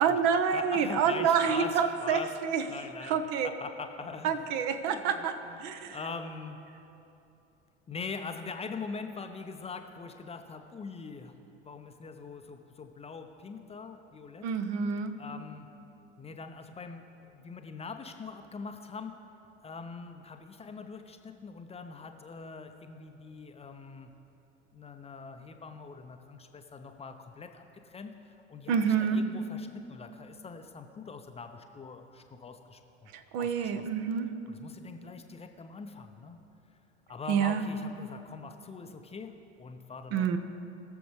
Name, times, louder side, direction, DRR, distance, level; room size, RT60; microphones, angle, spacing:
voice 1, 0.0-2.6 3.1-3.5 4.2-6.0 14.4-15.2 28.7-29.2 33.1-34.3 37.3-37.6 40.1-40.4, right 7 dB, 50° right, 8 dB, 0.8 m, -28 dB
voice 2, 0.5-1.7 2.0-2.3 2.7-3.2 3.6-4.5 4.9-6.6 7.9-11.3 11.6-14.5 15.2-15.7 16.2-19.1 19.6-24.1 24.7-33.1 33.4-33.8 34.5-36.4 37.1-39.3 39.6-40.4, left 4 dB, 20° left, 6 dB, 0.7 m, -43 dB
21.0 x 7.0 x 3.2 m, 2.8 s
figure-of-eight pair, 70°, 34 cm